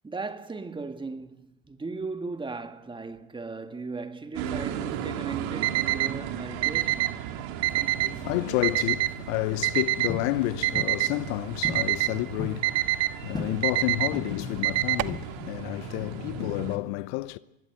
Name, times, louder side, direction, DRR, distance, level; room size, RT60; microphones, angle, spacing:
voice 1, 0.0-7.0, right 3 dB, 10° right, 1.8 m, -37 dB
sound 1, 4.3-16.8, right 9 dB, 55° right, 2.9 m, -37 dB
Alarm, 5.6-6.1 6.6-7.1 7.6-8.1 8.6-9.1 9.6-10.1 10.6-11.1 11.6-12.1 12.6-13.1 13.6-14.1 14.6-15.2, right 16 dB, 40° right, 1.0 m, -25 dB
voice 2, 8.0-17.4, left 20 dB, 50° left, 0.9 m, -30 dB
sound 2, 10.1-10.3 10.8-11.0 11.6-11.9 12.2-12.6 13.3-13.6 14.1-14.5 15.1-15.6, left 2 dB, 10° left, 4.4 m, -36 dB
25.5 x 20.0 x 8.0 m
hypercardioid pair, 95°, 41 cm